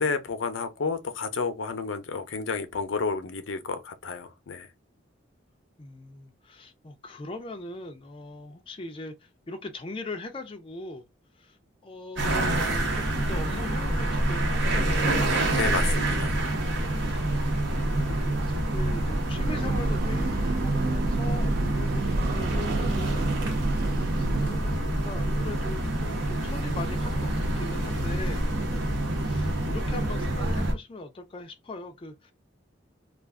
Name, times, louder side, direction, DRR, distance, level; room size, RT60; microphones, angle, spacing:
voice 1, 0.0-4.7 15.5-16.4, left 4 dB, 80° left, 0.6 m, -31 dB
voice 2, 5.8-11.1 11.3-15.4 17.1-28.5 29.2-32.3, left 2 dB, 25° left, 0.4 m, -41 dB
sound 1, 12.2-30.7, right 1 dB, 65° right, 0.9 m, -27 dB
Breathing / Train, 19.2-24.8, right 3 dB, 45° right, 0.3 m, -29 dB
2.4 x 2.3 x 3.5 m
head